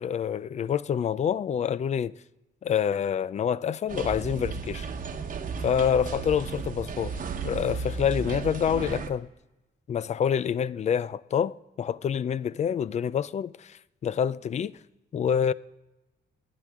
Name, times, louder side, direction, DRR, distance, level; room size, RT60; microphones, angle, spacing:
voice 1, 0.0-2.1 2.6-4.9 5.6-7.2 7.4-9.3 9.9-14.8 15.1-15.5, left 8 dB, 40° left, 0.4 m, -27 dB
sound 1, 3.9-9.1, right 5 dB, 45° right, 1.1 m, -34 dB
28.5 x 10.5 x 3.6 m
wide cardioid pair, 155°, 19 cm